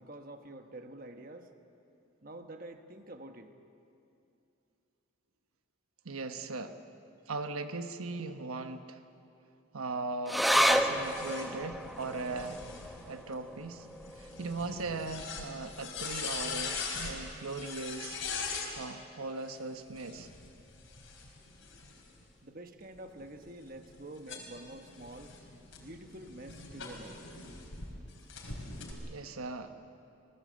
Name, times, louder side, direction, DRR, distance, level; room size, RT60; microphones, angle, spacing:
voice 1, 0.0-1.5 2.2-3.5 22.4-25.3 25.8-27.2, right 1 dB, 40° right, 6 dB, 1.2 m, -47 dB
voice 2, 6.0-6.8 7.3-9.0 9.7-12.6 13.1-13.9 14.1-18.2 18.8-20.3 29.1-29.7, right 3 dB, 90° right, 8 dB, 1.1 m, -39 dB
sound 1, 10.3-17.0 17.4-17.5 17.8-18.4 19.0-19.1, equal, ahead, 0.8 m, -33 dB
sound 2, 10.7-18.7 19.9-22.2 22.8-27.9 28.3-28.9, left 5 dB, 60° left, 4.3 m, -42 dB
26.0 x 19.5 x 7.7 m, 2.6 s
head